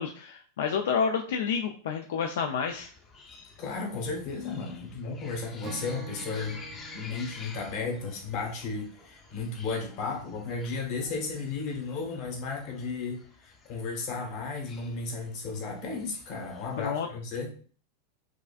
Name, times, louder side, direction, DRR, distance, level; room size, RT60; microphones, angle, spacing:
voice 1, 0.0-2.9 16.8-17.1, left 6 dB, 85° left, 3 dB, 0.3 m, -29 dB
sound 1, 2.7-16.9, left 4 dB, 25° left, 0.6 m, -51 dB
voice 2, 3.6-6.6 6.9-17.5, left 4 dB, 50° left, 1 dB, 1.2 m, -34 dB
Acoustic guitar / Strum, 5.6-9.1, right 5 dB, 35° right, 0.5 m, -46 dB
4.7 x 2.5 x 2.4 m, 0.43 s
supercardioid pair, 145°, 0 cm